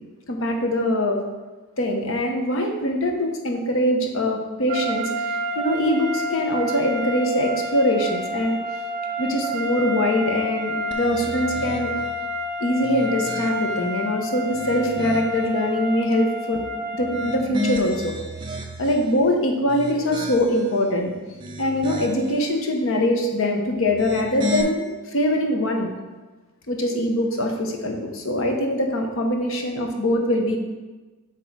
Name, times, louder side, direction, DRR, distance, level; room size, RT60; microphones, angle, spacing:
voice 1, 0.3-1.2 1.8-8.6 9.2-11.9 12.6-16.7 16.9-18.2 18.8-21.1 21.6-25.9 26.7-30.6, left 1 dB, 65° left, 2 dB, 0.8 m, -23 dB
sound 1, 4.7-17.5, equal, 45° right, 1.2 m, -29 dB
sound 2, 10.9-12.2 12.7-13.9 14.4-15.5 17.0-19.1 19.6-20.8 21.2-22.4 23.8-24.6, left 1 dB, 20° right, 0.4 m, -33 dB
8.0 x 3.0 x 4.6 m, 1.2 s
head